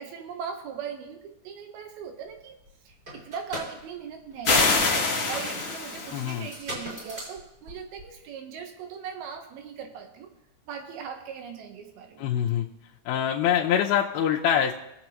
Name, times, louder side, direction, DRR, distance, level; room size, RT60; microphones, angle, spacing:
voice 1, 0.0-2.6 2.9-5.0 5.3-10.3 10.7-12.3, right 7 dB, 80° right, 4 dB, 3.0 m, -39 dB
sound 1, 2.3-2.4 2.6-8.3, right 1 dB, 25° right, 4.6 m, -40 dB
sound 2, 4.4-6.5, left 3 dB, 60° left, 0.8 m, -25 dB
voice 2, 6.1-6.5 12.2-12.7 13.1-14.7, left 9 dB, 80° left, -2 dB, 2.6 m, -24 dB
23.0 x 7.8 x 3.1 m, 0.86 s
omnidirectional pair, 4.4 m